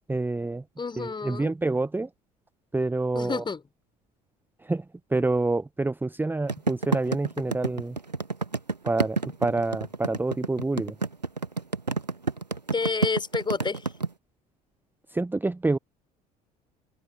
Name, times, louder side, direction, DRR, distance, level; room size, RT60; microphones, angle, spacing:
voice 1, 0.1-0.6 1.0-2.1 2.7-3.4 4.6-4.8 5.1-8.0 8.8-10.9 15.1-15.8, right 2 dB, 10° right, 1.0 m, -27 dB
voice 2, 0.8-1.5 3.1-3.6 12.7-13.9, left 4 dB, 20° left, 5.4 m, -29 dB
sound 1, 6.5-14.1, right 3 dB, 85° right, 1.5 m, -28 dB
open air
figure-of-eight pair, 60°, 21 cm